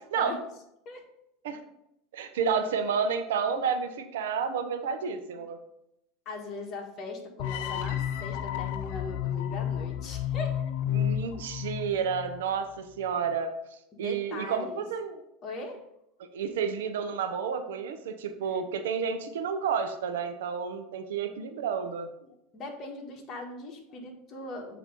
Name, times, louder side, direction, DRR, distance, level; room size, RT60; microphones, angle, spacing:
voice 1, 2.1-5.6 10.9-15.2 16.2-22.1, right 6 dB, 85° right, 7 dB, 0.8 m, -30 dB
voice 2, 6.2-10.6 13.9-14.8 15.4-15.8 18.5-18.6 22.2-24.8, left 2 dB, 40° left, 1 dB, 1.6 m, -40 dB
sound 1, 7.4-12.5, left 10 dB, 70° left, 0.4 m, -31 dB
7.4 x 3.1 x 5.2 m, 0.80 s
supercardioid pair, 115°, 0 cm